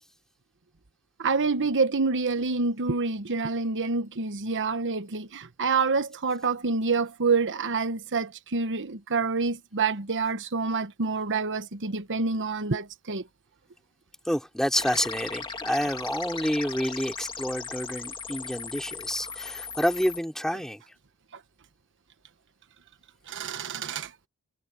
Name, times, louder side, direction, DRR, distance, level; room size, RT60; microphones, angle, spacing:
voice 1, 1.2-13.2 23.3-24.1, right 4 dB, 55° right, 1.1 m, -27 dB
voice 2, 14.3-20.8, equal, ahead, 3.7 m, -28 dB
sound 1, 14.7-20.2, left 5 dB, 20° left, 2.1 m, -38 dB
head